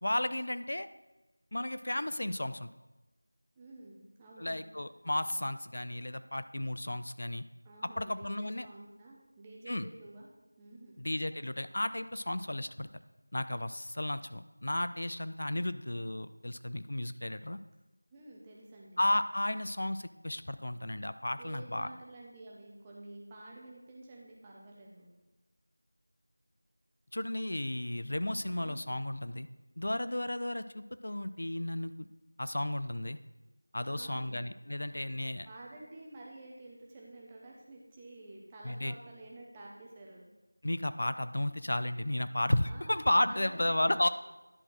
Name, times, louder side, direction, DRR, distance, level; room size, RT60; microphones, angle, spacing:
voice 1, 0.0-0.9 1.5-2.7 4.4-7.4 8.0-8.7 9.7-9.9 11.0-12.9 13.3-17.6 19.0-21.9 27.1-29.5 29.8-32.1 32.4-33.2 33.7-35.5 38.6-38.9 40.6-44.1, left 1 dB, 50° left, 12 dB, 0.4 m, -33 dB
voice 2, 3.6-4.6 7.6-10.3 10.6-11.0 18.1-19.1 21.4-25.1 28.6-28.8 33.9-34.4 35.4-40.3 42.7-43.0 43.3-43.8, right 2 dB, 10° right, -3 dB, 0.8 m, -50 dB
10.5 x 4.4 x 4.5 m, 1.0 s
figure-of-eight pair, 175°, 0 cm